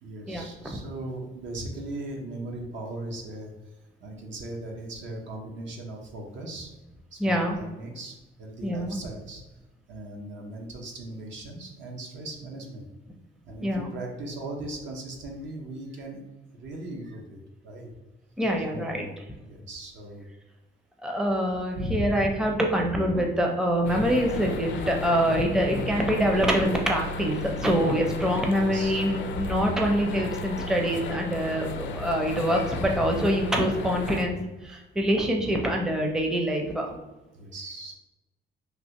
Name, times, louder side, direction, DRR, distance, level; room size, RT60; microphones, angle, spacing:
voice 1, 0.0-6.7 7.1-9.4 9.9-12.9 13.4-16.2 16.6-17.9 18.7-20.3 21.8-22.3 25.5-25.7 27.9-29.0 37.3-37.9, right 1 dB, 70° right, 1 dB, 0.8 m, -38 dB
voice 2, 7.2-7.6 8.6-9.0 13.6-13.9 18.4-19.0 21.0-34.4 34.6-37.0, equal, 5° right, 1 dB, 0.5 m, -25 dB
sound 1, 23.8-34.2, left 2 dB, 70° left, 0.4 m, -34 dB
3.3 x 2.4 x 2.8 m, 1.1 s
cardioid pair, 90°, 20 cm